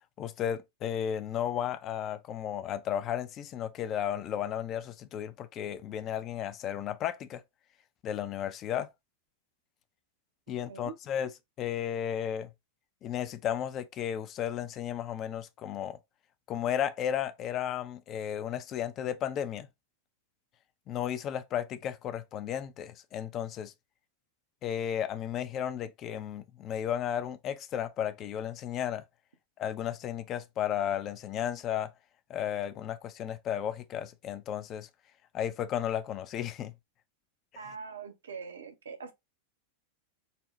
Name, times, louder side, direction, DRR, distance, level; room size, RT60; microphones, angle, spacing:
voice 1, 0.2-7.4 8.0-8.9 10.5-11.3 11.6-12.5 13.0-16.0 16.5-19.7 20.9-23.7 24.6-29.0 29.6-31.9 32.3-34.9 35.3-36.7 37.5-37.7, left 10 dB, 35° left, 0.4 m, -34 dB
voice 2, 10.5-10.9 37.6-39.1, right 5 dB, 65° right, 0.6 m, -43 dB
4.0 x 2.0 x 3.0 m
figure-of-eight pair, 90°, 0 cm